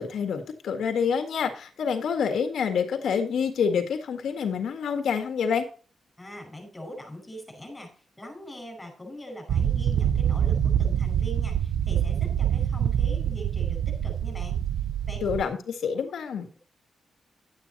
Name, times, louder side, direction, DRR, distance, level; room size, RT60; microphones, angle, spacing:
voice 1, 0.0-5.7 15.2-16.5, left 6 dB, 85° left, 6 dB, 1.8 m, -27 dB
voice 2, 6.2-14.6 15.1-15.2, equal, 10° left, 3 dB, 5.4 m, -42 dB
sound 1, 9.5-15.4, right 9 dB, 85° right, 0.6 m, -25 dB
11.5 x 8.9 x 4.1 m, 0.38 s
wide cardioid pair, 135°, 0 cm